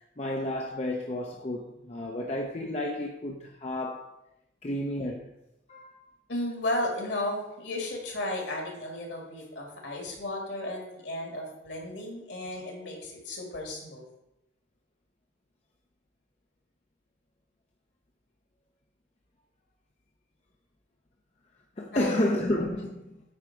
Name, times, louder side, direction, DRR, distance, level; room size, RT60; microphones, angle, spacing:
voice 1, 0.2-4.1 4.6-5.3 5.7-6.1 21.8-23.2, left 1 dB, 35° left, 0.7 m, -31 dB
voice 2, 6.3-14.0 21.9-22.2, left 1 dB, 65° left, 2.2 m, -34 dB
8.7 x 4.8 x 4.6 m
head